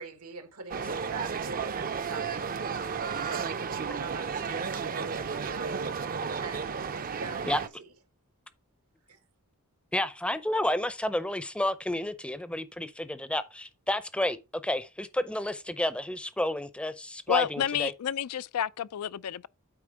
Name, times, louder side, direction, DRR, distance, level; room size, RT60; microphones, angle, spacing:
voice 1, 0.0-5.9 6.4-7.9 9.1-9.2, right 4 dB, 85° right, 1.6 m, -43 dB
sound 1, 0.7-7.7, right 6 dB, 40° right, 0.5 m, -33 dB
voice 2, 9.9-14.4 14.6-17.9, left 1 dB, 5° left, 0.6 m, -30 dB
voice 3, 17.3-19.5, left 9 dB, 85° left, 0.4 m, -30 dB
8.7 x 4.3 x 4.7 m
head